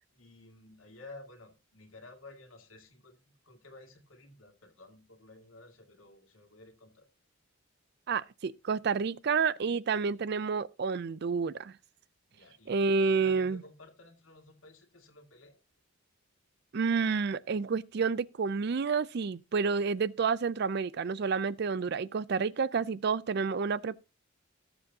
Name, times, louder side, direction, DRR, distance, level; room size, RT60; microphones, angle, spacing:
voice 1, 0.1-7.1 12.3-15.6, left 2 dB, 80° left, 2.1 m, -53 dB
voice 2, 8.1-11.7 12.7-13.6 16.7-24.0, right 5 dB, 55° right, 0.4 m, -29 dB
18.5 x 7.1 x 2.8 m
head